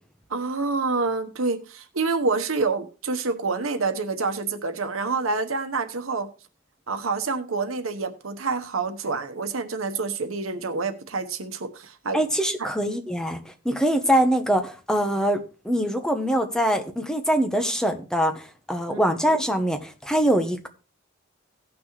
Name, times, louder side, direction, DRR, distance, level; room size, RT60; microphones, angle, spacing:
voice 1, 0.3-6.3 6.9-12.2 12.6-12.7 18.9-19.0, right 4 dB, 85° right, 1.1 m, -27 dB
voice 2, 12.1-20.7, equal, 5° left, 0.9 m, -23 dB
18.0 x 6.1 x 3.1 m
head